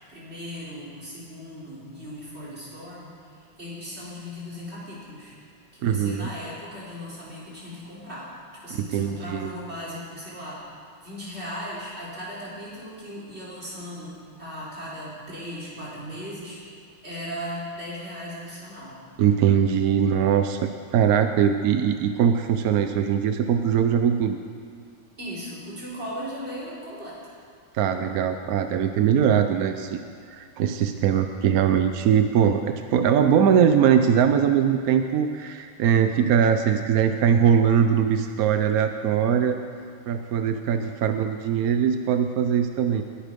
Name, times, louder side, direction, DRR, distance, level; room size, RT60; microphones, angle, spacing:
voice 1, 0.1-5.4 5.7-8.3 8.6-10.6 11.0-16.6 17.0-19.0 25.2-27.2, equal, 30° right, -7 dB, 4.2 m, -37 dB
voice 2, 5.8-6.3 8.7-9.5 19.2-20.6 20.9-24.4 27.7-30.0 30.3-39.6 40.1-43.0, right 8 dB, 70° right, 7 dB, 0.8 m, -21 dB
20.5 x 10.0 x 5.2 m, 2.1 s
omnidirectional pair, 2.2 m